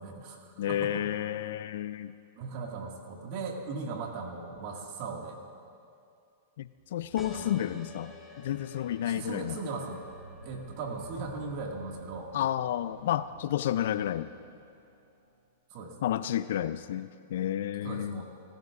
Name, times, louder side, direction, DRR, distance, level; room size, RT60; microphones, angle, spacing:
voice 1, 0.0-1.0 2.4-5.4 7.3-7.7 9.1-10.0 10.4-12.3 15.7-15.9 17.8-18.2, right 4 dB, 50° right, 1 dB, 1.9 m, -38 dB
voice 2, 0.6-2.1 6.6-9.6 12.3-14.3 16.0-18.2, left 11 dB, 70° left, 14 dB, 0.3 m, -31 dB
sound 1, 6.7-15.5, right 2 dB, 85° right, 2.7 m, -54 dB
sound 2, 7.2-12.4, left 2 dB, 5° left, 1.3 m, -52 dB
18.5 x 14.5 x 2.5 m, 2.4 s
hypercardioid pair, 125°, 0 cm